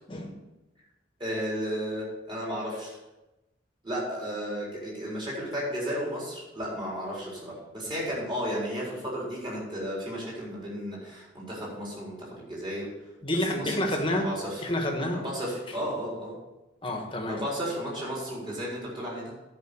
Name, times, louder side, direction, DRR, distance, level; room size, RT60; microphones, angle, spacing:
voice 1, 1.2-3.0 3.8-12.9 13.3-14.7 15.1-16.4 17.3-19.3, equal, 25° right, -5 dB, 4.3 m, -34 dB
voice 2, 13.2-14.3 14.6-15.2 16.8-17.4, left 1 dB, 25° left, 2 dB, 1.5 m, -28 dB
10.5 x 5.7 x 6.9 m, 1.0 s
head